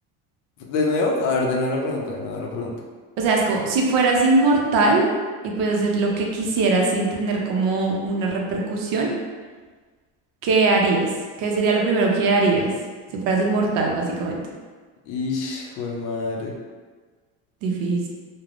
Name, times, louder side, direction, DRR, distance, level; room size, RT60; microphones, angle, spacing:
voice 1, 0.6-2.7 15.1-16.5, left 3 dB, 55° left, 0 dB, 0.5 m, -25 dB
voice 2, 3.2-5.1 5.4-9.1 10.4-11.0 11.4-12.7 13.1-14.4 17.6-18.0, right 3 dB, 60° right, -1 dB, 0.6 m, -21 dB
3.2 x 2.1 x 2.4 m, 1.4 s
cardioid pair, 150°, 39 cm